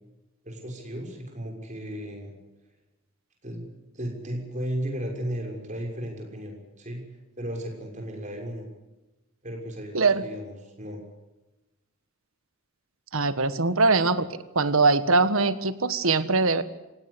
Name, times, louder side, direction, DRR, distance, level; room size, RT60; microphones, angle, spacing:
voice 1, 0.4-2.4 3.4-3.7 3.9-7.0 7.4-8.7 9.4-11.0, equal, 35° right, 1 dB, 6.5 m, -35 dB
voice 2, 9.9-10.3 13.1-14.3 14.5-16.6, right 3 dB, 75° right, 13 dB, 1.5 m, -22 dB
25.5 x 17.5 x 8.4 m, 1.0 s
head